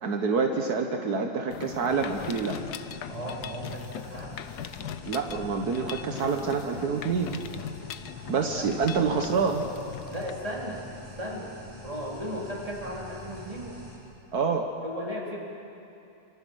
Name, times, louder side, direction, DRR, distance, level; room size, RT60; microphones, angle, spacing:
voice 1, 0.0-2.6 5.1-7.4 8.3-9.7 14.3-14.7, right 5 dB, 75° right, 4 dB, 1.7 m, -27 dB
Mechanisms, 1.5-10.3, left 10 dB, 85° left, 1.3 m, -40 dB
sound 1, 1.9-14.0, left 1 dB, 40° right, 6.5 m, -46 dB
voice 2, 3.1-4.4 8.6-8.7 10.0-10.9 11.2-11.5 11.8-13.7 14.8-15.4, equal, 20° right, -2 dB, 3.8 m, -36 dB
25.5 x 25.0 x 6.4 m, 2.8 s
omnidirectional pair, 1.7 m